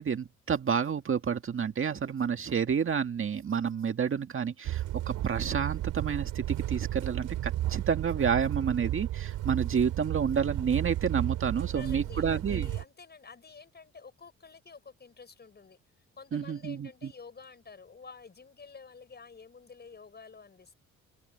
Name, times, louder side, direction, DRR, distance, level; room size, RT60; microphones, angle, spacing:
voice 1, 0.0-12.7 16.3-17.1, right 7 dB, 45° right, 1.8 m, -30 dB
sound 1, 4.6-12.8, right 14 dB, 85° right, 3.0 m, -33 dB
voice 2, 11.6-15.8 16.1-20.7, left 5 dB, 35° left, 5.5 m, -50 dB
cardioid pair, 90°, 30 cm